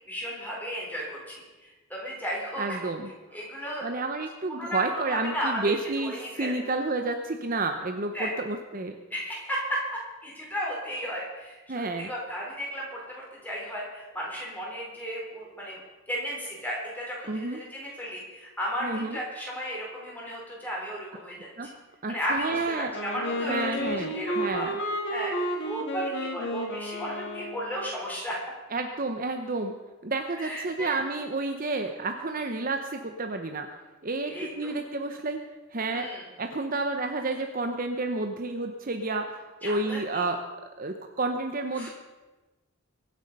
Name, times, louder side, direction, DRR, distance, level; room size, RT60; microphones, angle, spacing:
voice 1, 0.1-2.6 3.3-3.9 4.5-4.8 5.0-5.6 6.0-6.6 8.1-8.3 9.1-11.6 12.0-21.3 22.1-24.7 25.1-25.3 25.7-28.4 30.4-31.0 34.3-34.7 35.9-36.2 39.6-40.3 41.8-41.9, equal, 10° left, -4 dB, 4.2 m, -34 dB
voice 2, 2.6-3.1 3.8-9.0 11.7-12.1 17.3-17.6 18.8-19.2 21.6-21.7 22.0-22.9 23.4-24.7 28.7-29.7 30.0-33.7 34.0-35.4 35.7-36.1 36.4-40.4 40.8-41.9, right 3 dB, 40° right, 5 dB, 0.9 m, -30 dB
Wind instrument woodwind instrument, 22.9-27.9, equal, 50° left, 2.4 m, -32 dB
23.0 x 8.0 x 5.4 m, 1.2 s
head